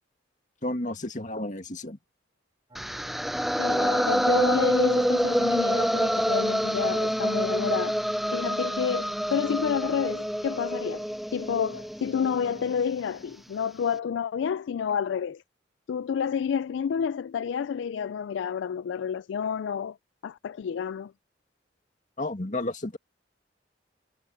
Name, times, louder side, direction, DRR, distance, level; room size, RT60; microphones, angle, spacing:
voice 1, 0.6-2.0 22.2-23.0, left 2 dB, 40° left, 2.2 m, -32 dB
sound 1, 2.7-12.8, equal, ahead, 0.4 m, -27 dB
sound 2, 2.7-13.6, equal, 25° right, 6.0 m, -55 dB
voice 2, 3.6-8.0 8.3-11.0 11.3-15.4 15.9-20.0 20.2-21.1, left 7 dB, 75° left, 0.3 m, -29 dB
head